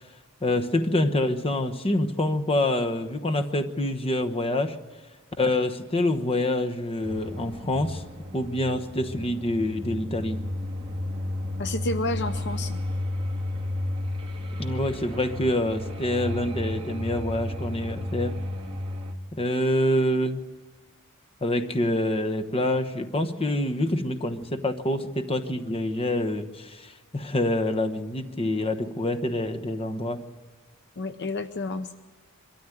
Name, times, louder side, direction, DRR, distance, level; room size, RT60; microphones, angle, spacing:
voice 1, 0.4-4.8 5.4-8.0 8.3-10.4 14.6-18.4 19.3-20.4 21.4-30.2, left 1 dB, 25° left, 6 dB, 1.1 m, -26 dB
sound 1, 7.0-19.1, left 1 dB, 25° right, 2.0 m, -32 dB
voice 2, 11.6-12.8 31.0-31.9, left 2 dB, 50° left, 10 dB, 0.7 m, -30 dB
23.5 x 13.5 x 9.2 m, 1.4 s
head